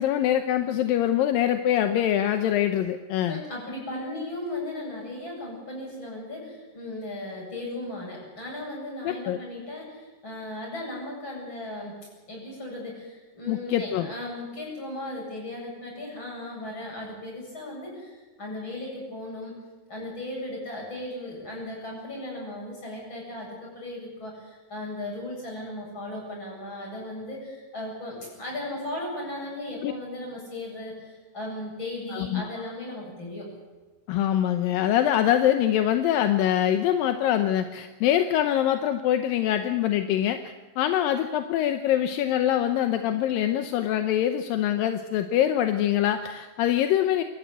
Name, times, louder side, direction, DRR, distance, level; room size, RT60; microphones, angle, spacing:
voice 1, 0.0-3.4 9.0-9.4 13.5-14.1 29.8-29.9 32.1-32.5 34.1-47.2, left 11 dB, 75° left, 8 dB, 2.2 m, -24 dB
voice 2, 3.3-12.0 12.3-19.6 19.9-33.5, left 1 dB, 25° left, -2 dB, 8.8 m, -36 dB
26.5 x 13.5 x 8.0 m, 1.3 s
omnidirectional pair, 4.8 m